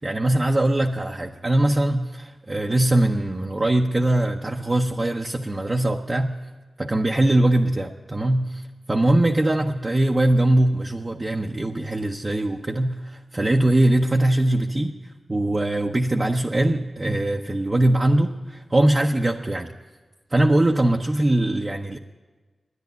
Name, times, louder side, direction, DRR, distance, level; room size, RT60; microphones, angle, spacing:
voice 1, 0.0-6.3 6.8-15.0 15.3-19.7 20.3-22.0, right 1 dB, 35° right, 1 dB, 0.8 m, -21 dB
11.0 x 10.0 x 9.3 m, 1.3 s
cardioid pair, 40°, 0 cm